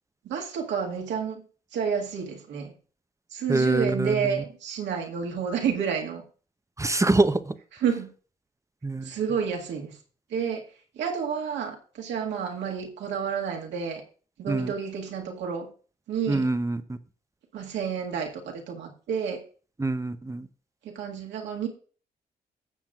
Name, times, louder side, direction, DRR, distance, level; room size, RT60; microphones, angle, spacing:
voice 1, 0.2-1.4 1.7-2.7 3.3-6.2 7.8-8.1 9.0-10.0 10.3-10.6 10.9-14.0 14.4-15.7 16.1-16.5 17.5-19.4 20.8-21.7, right 7 dB, 70° right, 1 dB, 1.8 m, -30 dB
voice 2, 3.5-4.4 6.8-7.5 8.8-9.1 14.5-14.7 16.3-17.0 19.8-20.5, right 2 dB, 15° right, 11 dB, 0.8 m, -25 dB
16.5 x 7.2 x 2.4 m, 0.39 s
hypercardioid pair, 40°, 19 cm